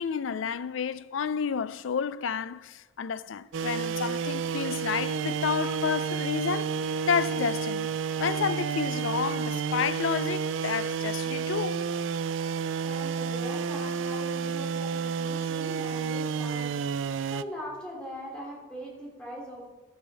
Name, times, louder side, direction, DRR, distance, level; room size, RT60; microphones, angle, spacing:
voice 1, 0.0-7.9 8.2-11.9, left 6 dB, 85° left, 0.4 m, -30 dB
sound 1, 3.5-17.4, right 6 dB, 80° right, 0.4 m, -30 dB
voice 2, 12.8-19.7, equal, 5° left, 3.0 m, -41 dB
13.0 x 8.2 x 6.1 m
head